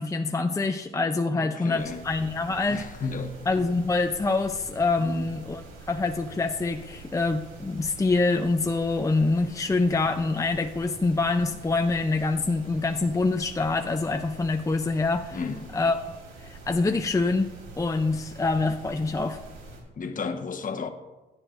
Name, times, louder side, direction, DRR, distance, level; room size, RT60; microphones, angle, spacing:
voice 1, 0.0-2.8 3.5-5.6 5.9-15.4 15.7-16.0 16.4-19.4, left 3 dB, 15° left, 0.5 m, -25 dB
voice 2, 1.3-2.0 2.7-3.4 5.0-5.3 15.3-15.8 20.0-20.9, left 5 dB, 40° left, 1.1 m, -33 dB
sound 1, 1.8-19.8, right 2 dB, 90° right, 3.3 m, -45 dB
17.0 x 9.8 x 2.6 m
cardioid pair, 90°, 20 cm